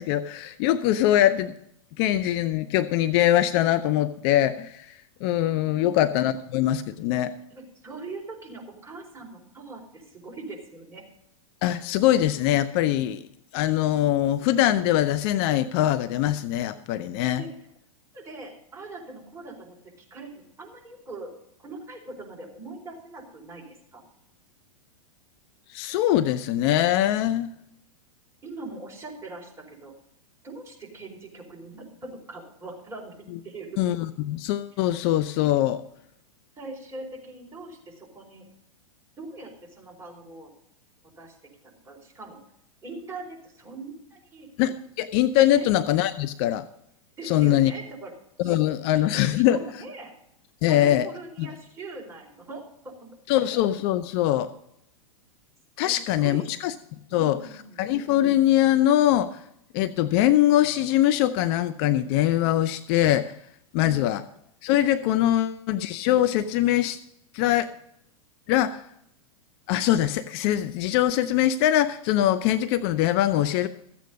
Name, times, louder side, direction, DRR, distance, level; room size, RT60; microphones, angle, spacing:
voice 1, 0.0-1.5 2.0-4.9 5.2-7.3 11.6-13.2 13.5-17.4 25.7-27.5 33.8-35.8 44.6-46.7 47.2-47.7 48.4-49.6 50.6-51.1 51.4-51.5 53.3-54.5 55.8-56.7 57.1-57.4 57.8-59.4 59.7-63.4 63.7-64.2 64.6-67.0 67.3-67.7 68.5-68.8 69.7-73.7, left 13 dB, 45° left, 12 dB, 0.6 m, -22 dB
voice 2, 7.5-11.0 17.4-17.7 18.1-21.3 21.6-24.0 28.4-29.9 30.4-33.8 36.6-38.5 39.2-40.5 41.2-41.3 41.6-42.4 42.8-44.5 45.5-45.7 47.2-48.1 48.4-49.0 49.3-50.1 50.7-53.1 53.4-53.5 55.8-56.5 57.1-57.8 63.8-64.2 65.0-65.4, right 3 dB, 15° right, -1 dB, 4.4 m, -41 dB
14.0 x 8.5 x 5.2 m, 0.75 s
hypercardioid pair, 115°, 18 cm